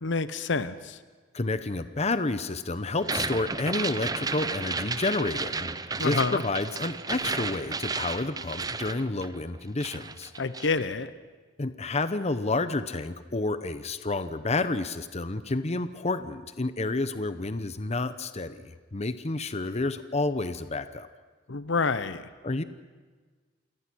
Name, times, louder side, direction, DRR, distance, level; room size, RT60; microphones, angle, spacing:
voice 1, 0.0-1.0 6.0-6.4 10.4-11.1 21.5-22.3, left 4 dB, 65° left, 14 dB, 0.9 m, -28 dB
voice 2, 1.3-10.3 11.6-21.1 22.4-22.6, left 2 dB, 35° left, 12 dB, 0.8 m, -30 dB
sound 1, 3.0-9.6 9.8-10.8, right 4 dB, 20° right, 0.7 m, -33 dB
27.5 x 18.5 x 6.2 m, 1.4 s
head